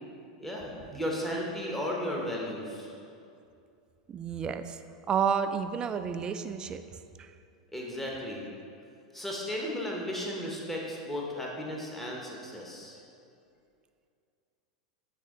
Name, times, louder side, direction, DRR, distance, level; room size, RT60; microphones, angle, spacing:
voice 1, 0.4-2.9 7.7-8.5 9.1-13.0, equal, 5° left, -3 dB, 0.9 m, -35 dB
voice 2, 4.1-4.8 5.1-7.3, right 7 dB, 25° right, 9 dB, 0.3 m, -31 dB
8.4 x 3.4 x 3.7 m, 2.5 s
hypercardioid pair, 105°, 3 cm